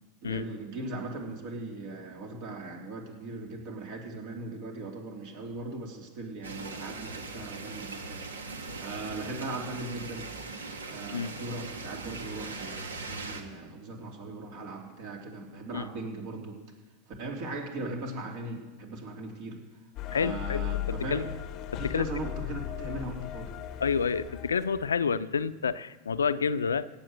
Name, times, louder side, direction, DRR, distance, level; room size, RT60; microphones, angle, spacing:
voice 1, 0.2-10.3 10.9-16.6 17.1-19.6 20.0-21.3 21.8-23.5, right 2 dB, 60° right, 1 dB, 3.3 m, -39 dB
sound 1, 6.4-13.4, right 3 dB, 85° right, 1.4 m, -40 dB
sound 2, 20.0-25.0, left 12 dB, 45° left, 0.7 m, -37 dB
voice 2, 20.1-20.6 21.1-21.2 21.7-22.1 23.8-26.9, left 6 dB, 85° left, 14 dB, 0.5 m, -29 dB
17.0 x 7.4 x 7.7 m, 1.1 s
hypercardioid pair, 95°, 0 cm